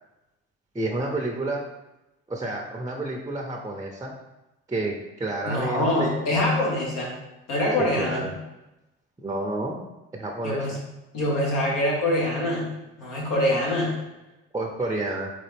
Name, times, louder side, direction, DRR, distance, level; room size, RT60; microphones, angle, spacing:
voice 1, 0.7-1.6 2.3-4.1 4.7-6.2 7.8-8.3 9.2-9.8 10.1-10.7 14.5-15.3, right 2 dB, 10° right, 1 dB, 0.6 m, -30 dB
voice 2, 5.4-7.1 7.5-8.3 10.4-10.7 11.1-12.7 13.0-13.9, left 1 dB, 80° left, -3 dB, 1.6 m, -24 dB
3.9 x 3.9 x 3.4 m, 0.99 s
supercardioid pair, 65°, 31 cm